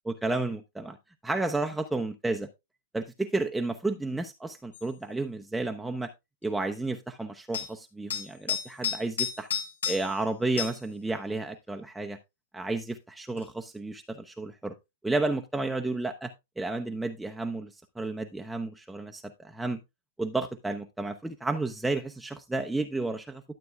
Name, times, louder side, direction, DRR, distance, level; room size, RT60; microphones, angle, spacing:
voice 1, 0.1-1.0 1.2-2.5 2.9-6.1 6.4-9.5 9.9-12.2 12.5-14.7 15.0-16.3 16.6-19.8 20.2-23.4, right 2 dB, 5° right, 0.8 m, -32 dB
sound 1, 4.7-4.9 7.5-7.7 8.1-10.2 10.6-10.9 13.4-13.5, left 8 dB, 85° left, 2.8 m, -32 dB
12.0 x 7.6 x 2.2 m
hypercardioid pair, 115°, 0 cm